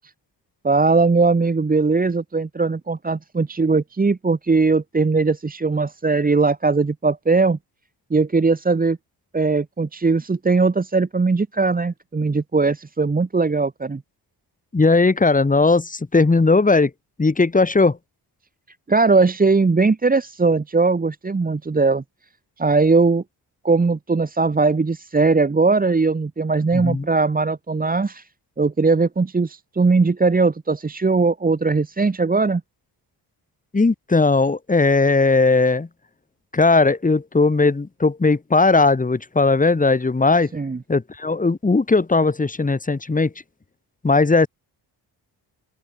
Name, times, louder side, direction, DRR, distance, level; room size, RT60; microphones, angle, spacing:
voice 1, 0.6-7.6 8.1-9.0 9.3-14.0 18.9-22.0 22.6-23.2 23.6-28.3 28.6-32.6 40.5-40.8, right 4 dB, 20° right, 1.8 m, -19 dB
voice 2, 14.7-16.9 17.2-18.0 26.7-27.1 33.7-35.9 36.5-40.5 40.9-43.3 44.0-44.5, left 3 dB, 20° left, 4.4 m, -18 dB
open air
wide cardioid pair, 175°, 42 cm